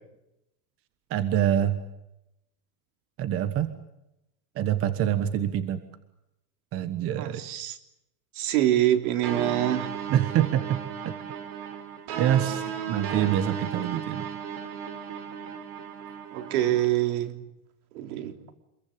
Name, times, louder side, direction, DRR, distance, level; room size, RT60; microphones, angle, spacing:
voice 1, 1.1-1.8 3.2-3.7 4.5-5.8 6.7-7.4 10.1-11.2 12.2-14.3, right 10 dB, 30° right, 11 dB, 1.4 m, -26 dB
voice 2, 7.2-7.8 8.3-9.9 16.3-17.4 17.9-18.4, right 13 dB, 65° right, 7 dB, 3.6 m, -25 dB
sound 1, 9.2-16.8, right 7 dB, 50° right, 4.7 m, -35 dB
27.0 x 22.5 x 8.8 m, 0.87 s
supercardioid pair, 165°, 47 cm